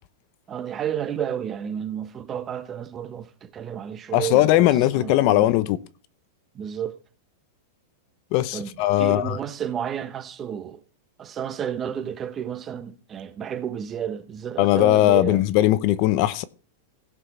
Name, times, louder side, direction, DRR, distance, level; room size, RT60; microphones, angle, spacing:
voice 1, 0.5-5.5 6.5-7.0 8.5-8.7 9.0-10.8 11.2-15.4, right 9 dB, 25° right, 1.0 m, -31 dB
voice 2, 4.1-5.8 8.3-9.4 14.6-16.4, left 15 dB, 50° left, 0.8 m, -19 dB
16.5 x 6.2 x 4.4 m
supercardioid pair, 140°, 0 cm